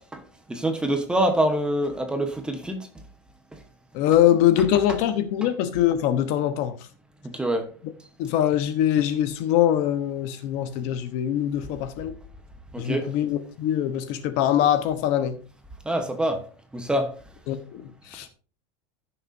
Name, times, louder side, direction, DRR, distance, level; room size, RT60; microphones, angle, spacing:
voice 1, 0.5-2.9 5.4-5.5 7.2-7.7 12.7-13.1 15.8-16.4 16.7-17.1, right 1 dB, 5° right, 1.0 m, -25 dB
voice 2, 3.9-6.7 8.2-12.1 12.8-15.4 17.5-18.3, left 11 dB, 45° left, 1.0 m, -23 dB
15.5 x 6.6 x 2.7 m
supercardioid pair, 160°, 15 cm